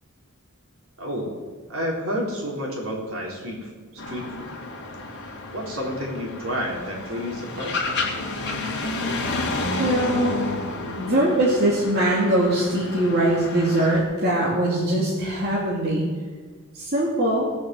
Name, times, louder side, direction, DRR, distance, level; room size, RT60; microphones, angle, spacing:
voice 1, 1.0-1.3 1.7-3.7 4.1-4.6 5.1-7.8, equal, 65° right, -2 dB, 4.0 m, -30 dB
sound 1, 4.0-14.0, left 2 dB, 55° left, 2.8 m, -30 dB
voice 2, 9.8-10.5 11.0-16.1 16.7-17.5, right 1 dB, 45° right, -6 dB, 2.8 m, -22 dB
19.0 x 7.2 x 7.9 m, 1.5 s
head